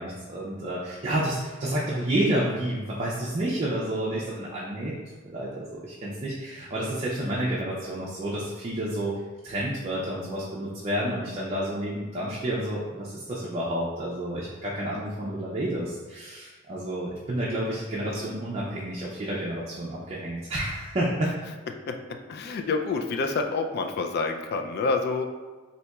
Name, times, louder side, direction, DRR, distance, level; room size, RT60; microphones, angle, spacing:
voice 1, 0.0-4.9 5.2-21.3, right 1 dB, 35° right, -6 dB, 0.5 m, -30 dB
voice 2, 22.3-25.3, left 4 dB, 55° left, 5 dB, 0.3 m, -27 dB
4.0 x 2.8 x 2.3 m, 1.3 s
head